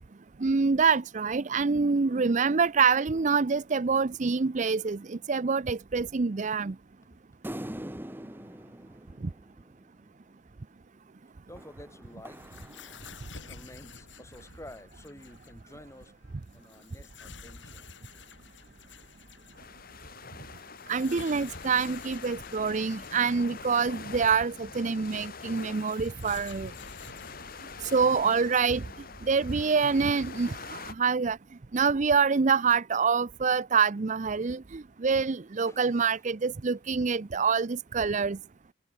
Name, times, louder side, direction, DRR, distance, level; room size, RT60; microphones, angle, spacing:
voice 1, 0.4-6.7 20.9-26.7 27.9-28.8 29.2-31.4 31.7-38.4, right 5 dB, 40° right, 0.5 m, -26 dB
sound 1, 7.4-10.1 11.6-13.6, right 1 dB, 10° right, 1.4 m, -43 dB
voice 2, 11.5-12.6 13.4-16.2 16.5-17.8 35.6-36.2, left 1 dB, 15° left, 3.5 m, -50 dB
sound 2, 12.0-30.1, left 4 dB, 70° left, 4.2 m, -51 dB
sound 3, 19.6-30.9, left 5 dB, 50° left, 1.9 m, -44 dB
head